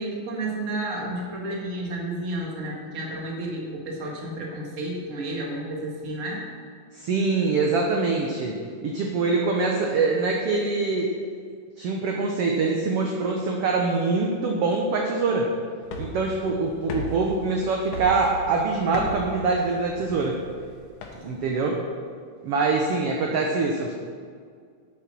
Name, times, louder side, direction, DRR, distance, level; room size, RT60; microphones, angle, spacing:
voice 1, 0.0-6.5, right 1 dB, 35° right, -2 dB, 1.5 m, -31 dB
voice 2, 6.9-11.2 11.8-15.5 16.0-20.4 21.1-21.8 22.4-23.9, right 3 dB, 70° right, 0 dB, 1.5 m, -24 dB
sound 1, 15.8-21.5, equal, 75° left, 2.5 m, -37 dB
8.8 x 7.9 x 6.0 m, 2.1 s
omnidirectional pair, 3.7 m